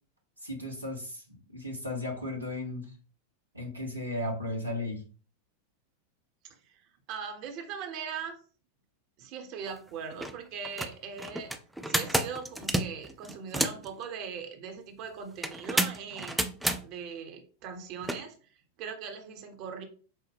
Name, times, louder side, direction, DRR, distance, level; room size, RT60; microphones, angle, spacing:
voice 1, 0.4-2.9 3.5-5.0, left 1 dB, 85° right, 1 dB, 1.1 m, -35 dB
voice 2, 6.4-8.4 9.2-11.5 11.8-16.5 16.8-19.8, right 6 dB, 40° right, 4 dB, 0.9 m, -40 dB
sound 1, 9.7-9.8 10.1-10.3 10.6-13.9 15.4-16.8 18.0-18.2, right 1 dB, 5° right, 0.4 m, -30 dB
5.5 x 2.1 x 3.4 m, 0.39 s
figure-of-eight pair, 90°, 0 cm